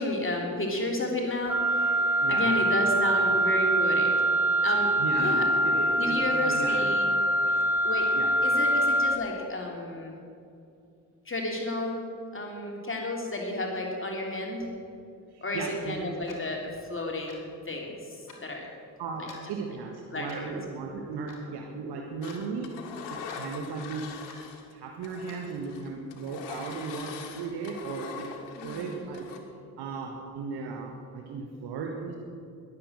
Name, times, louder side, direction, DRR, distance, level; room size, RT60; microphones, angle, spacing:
voice 1, 0.0-2.0 2.3-4.1 4.6-5.5 6.0-7.1 7.8-8.1 8.4-10.1 11.2-12.0 12.3-14.7 15.4-16.6 16.9-18.7 20.1-20.5 28.5-29.1, left 1 dB, 25° left, 0 dB, 3.3 m, -32 dB
Wind instrument woodwind instrument, 1.5-9.3, right 1 dB, 5° right, 0.5 m, -24 dB
voice 2, 2.2-2.6 5.0-7.1 7.4-7.5 8.1-8.3 9.2-9.3 15.3-16.1 19.0-24.1 24.7-28.4 28.6-29.3 29.8-32.2, right 4 dB, 55° right, 2 dB, 1.6 m, -36 dB
Clock, 16.3-16.5 17.3-17.5 18.3-18.4 19.3-19.5 20.3-20.5 21.3-21.4 22.3-22.4 23.3-23.4 24.3-24.5 25.3-25.4, left 3 dB, 40° left, 3.5 m, -49 dB
Engine, 22.2-24.7 25.0-29.4, left 6 dB, 65° left, 1.7 m, -42 dB
20.5 x 7.7 x 7.8 m, 2.5 s
figure-of-eight pair, 45°, 47 cm